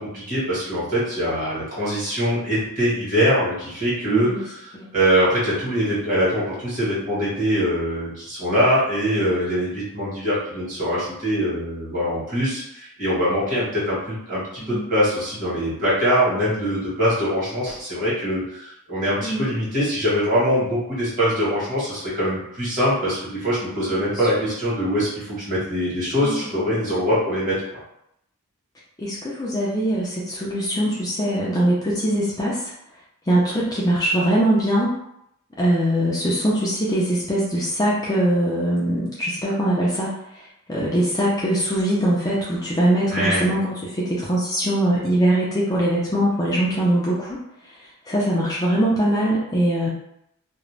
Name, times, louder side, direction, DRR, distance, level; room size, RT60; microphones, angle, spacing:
voice 1, 0.0-27.8 43.1-43.5, equal, 35° right, -8 dB, 1.2 m, -23 dB
voice 2, 4.1-4.4 4.7-4.9 14.6-14.9 19.2-19.5 24.0-24.1 26.2-26.7 29.0-32.7 33.3-35.0 35.6-40.4 40.7-47.4 47.7-47.8 48.1-49.9, right 1 dB, 15° left, -6 dB, 0.4 m, -22 dB
2.4 x 2.0 x 3.1 m, 0.78 s
head